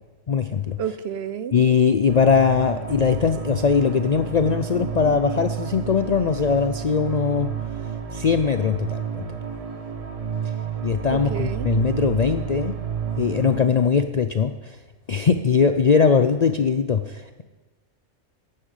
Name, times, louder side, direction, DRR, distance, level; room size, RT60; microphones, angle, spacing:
voice 1, 0.3-0.8 1.5-7.5 8.1-9.3 10.8-12.8 13.2-14.8 15.1-17.4, left 6 dB, 55° left, 9 dB, 0.4 m, -20 dB
voice 2, 0.8-1.5 11.1-11.7, right 8 dB, 60° right, 13 dB, 0.9 m, -30 dB
sound 1, 2.1-13.6, right 7 dB, 35° right, 0.8 m, -30 dB
12.0 x 8.8 x 8.2 m, 1.3 s
omnidirectional pair, 1.3 m